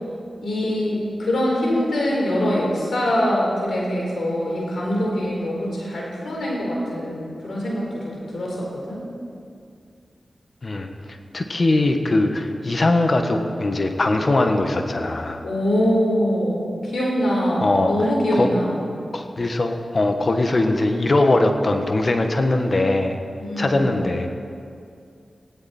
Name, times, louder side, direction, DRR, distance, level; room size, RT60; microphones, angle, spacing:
voice 1, 0.4-9.0 15.4-18.8 23.4-23.9, equal, 90° left, -3 dB, 4.5 m, -23 dB
voice 2, 10.6-15.5 17.6-17.9 18.3-18.5 19.1-23.2 23.6-24.3, left 2 dB, 55° left, 5 dB, 1.5 m, -21 dB
18.0 x 17.0 x 4.4 m, 2.3 s
cardioid pair, 45°, 0 cm